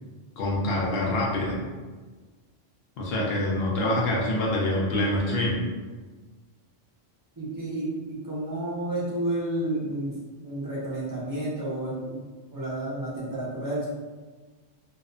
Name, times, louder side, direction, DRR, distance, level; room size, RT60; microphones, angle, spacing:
voice 1, 0.4-1.6 3.0-5.6, left 1 dB, 65° left, -3 dB, 0.7 m, -25 dB
voice 2, 7.4-10.1 10.4-12.2 12.5-13.9, right 1 dB, 25° right, -8 dB, 0.4 m, -31 dB
2.7 x 2.1 x 2.4 m, 1.3 s
omnidirectional pair, 1.3 m